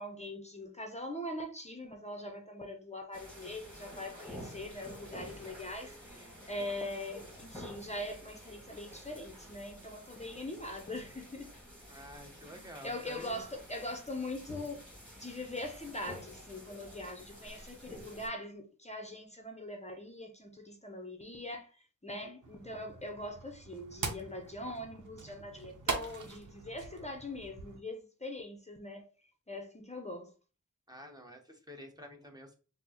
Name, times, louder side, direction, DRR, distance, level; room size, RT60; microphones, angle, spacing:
voice 1, 0.0-11.5 12.8-14.8 15.2-29.1 29.5-30.3, left 1 dB, 20° left, 0.6 m, -42 dB
sound 1, 3.1-18.3, equal, 5° left, 1.7 m, -50 dB
voice 2, 5.9-6.4 11.9-13.5 30.9-32.5, equal, 10° right, 0.9 m, -50 dB
sound 2, 22.4-27.8, right 4 dB, 70° right, 0.8 m, -42 dB
4.3 x 2.1 x 2.8 m
cardioid pair, 60°, 31 cm